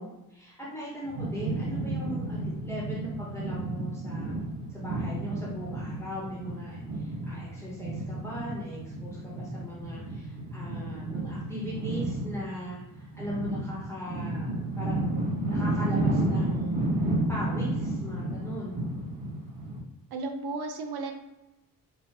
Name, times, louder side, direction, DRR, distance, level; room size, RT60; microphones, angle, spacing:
voice 1, 0.0-4.3 4.7-14.5 14.8-16.9 17.3-18.8, equal, 5° left, -8 dB, 1.0 m, -39 dB
sound 1, 1.0-19.8, right 1 dB, 70° right, 1.5 m, -32 dB
voice 2, 20.1-21.1, right 3 dB, 85° right, 4 dB, 0.7 m, -34 dB
4.8 x 2.7 x 2.9 m, 0.97 s
wide cardioid pair, 180°, 36 cm